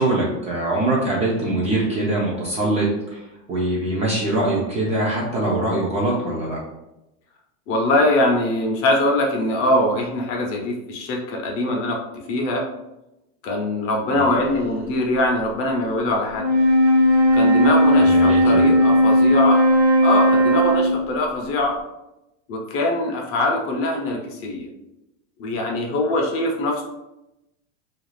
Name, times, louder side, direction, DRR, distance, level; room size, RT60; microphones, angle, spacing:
voice 1, 0.0-3.2 3.5-6.6 14.1-14.3 18.0-18.7, right 2 dB, 20° right, -4 dB, 0.4 m, -23 dB
voice 2, 7.7-12.0 12.3-12.6 13.4-16.5 17.3-19.6 20.0-21.8 22.5-24.7 25.4-26.8, left 1 dB, 40° left, 1 dB, 0.6 m, -22 dB
Wind instrument woodwind instrument, 16.3-21.1, equal, 45° right, 0.7 m, -16 dB
2.5 x 2.3 x 3.1 m, 0.91 s
supercardioid pair, 140°, 37 cm